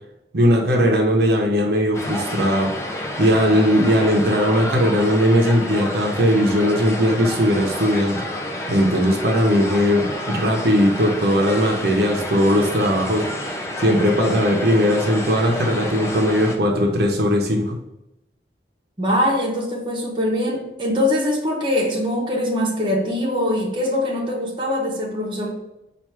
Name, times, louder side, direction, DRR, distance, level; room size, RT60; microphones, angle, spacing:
voice 1, 0.3-2.7 3.2-8.2 8.7-13.2 13.8-17.8, equal, 65° right, 1 dB, 0.7 m, -18 dB
sound 1, 1.9-16.6, left 1 dB, 15° left, 0.4 m, -29 dB
voice 2, 19.0-25.5, left 1 dB, 25° right, -2 dB, 0.8 m, -22 dB
4.5 x 2.5 x 4.6 m, 0.90 s
head